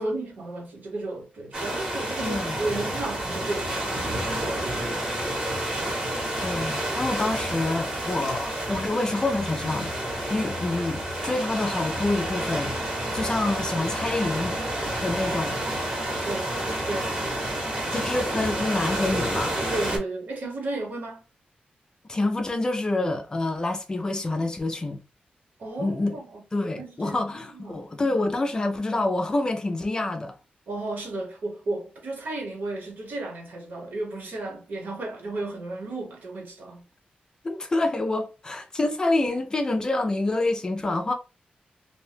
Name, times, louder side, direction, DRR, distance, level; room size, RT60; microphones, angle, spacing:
voice 1, 0.0-5.7 16.2-16.5 16.9-17.1 19.7-21.2 25.6-27.2 27.5-27.8 30.7-36.8, right 2 dB, 70° right, 1.0 m, -34 dB
sound 1, 1.5-20.0, right 1 dB, 25° right, 0.9 m, -29 dB
voice 2, 2.2-2.6 6.4-12.7 13.1-14.6 15.0-15.6 17.9-19.5 22.1-25.0 25.8-26.2 26.5-30.3 37.4-41.1, left 2 dB, 25° left, 0.4 m, -27 dB
2.7 x 2.1 x 3.2 m
wide cardioid pair, 175°, 3 cm